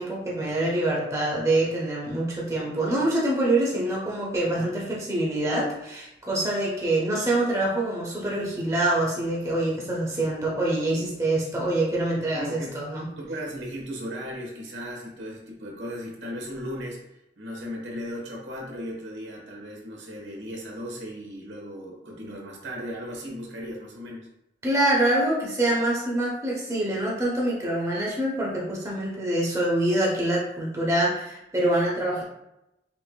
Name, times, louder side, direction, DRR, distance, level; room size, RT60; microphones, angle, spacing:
voice 1, 0.0-13.1 24.6-32.2, right 1 dB, 15° right, -4 dB, 0.9 m, -25 dB
voice 2, 12.3-12.8 13.2-17.0 17.4-24.3, equal, 85° right, -2 dB, 1.2 m, -36 dB
6.0 x 2.8 x 2.3 m, 0.87 s
head